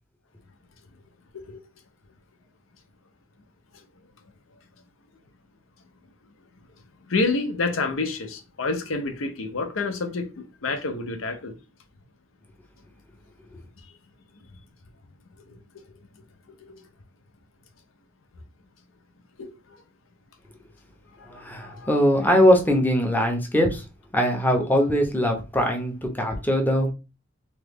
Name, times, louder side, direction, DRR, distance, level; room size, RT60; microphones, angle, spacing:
voice 1, 7.1-11.5 16.6-16.8 19.4-19.5 21.6-21.9, left 3 dB, 85° left, 0.6 m, -28 dB
voice 2, 21.3-23.8 24.1-26.9, equal, 10° left, 0.6 m, -21 dB
3.0 x 2.3 x 3.4 m
head